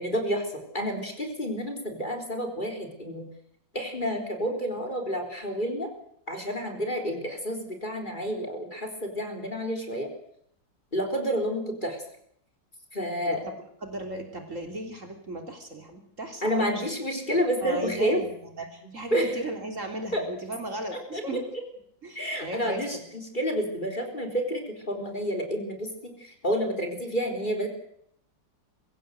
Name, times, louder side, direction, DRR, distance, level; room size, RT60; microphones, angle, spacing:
voice 1, 0.0-3.2 3.7-5.9 6.3-10.1 10.9-12.0 12.9-13.4 16.4-18.2 19.1-19.3 20.1-20.2 20.9-21.2 22.1-23.0 23.3-27.7, equal, 25° left, 3 dB, 4.2 m, -29 dB
voice 2, 13.8-16.8 17.6-21.5 22.0-23.0, right 1 dB, 40° right, 4 dB, 3.7 m, -36 dB
24.0 x 16.0 x 7.8 m, 0.70 s
omnidirectional pair, 2.0 m